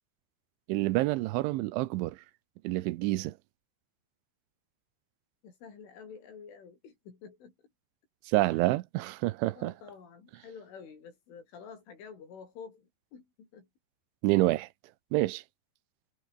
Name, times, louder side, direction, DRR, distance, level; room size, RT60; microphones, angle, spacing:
voice 1, 0.7-2.2 2.6-3.3 8.3-9.7 14.2-14.7 15.1-15.4, right 18 dB, 90° right, 3.2 m, -28 dB
voice 2, 5.4-7.5 8.5-8.7 9.5-13.7, left 6 dB, 80° left, 8.4 m, -49 dB
omnidirectional pair, 5.5 m